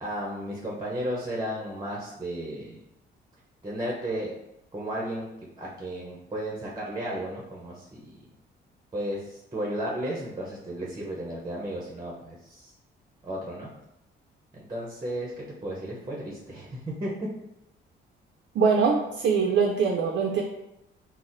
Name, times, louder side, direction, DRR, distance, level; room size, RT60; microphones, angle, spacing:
voice 1, 0.0-2.8 3.6-4.3 4.7-5.3 5.6-8.2 8.9-12.7 13.2-13.7 14.5-17.1, right 1 dB, 20° right, -4 dB, 0.7 m, -34 dB
voice 2, 18.6-20.4, right 5 dB, 60° right, 1 dB, 0.4 m, -23 dB
4.0 x 2.0 x 2.5 m, 0.84 s
cardioid pair, 90°, 20 cm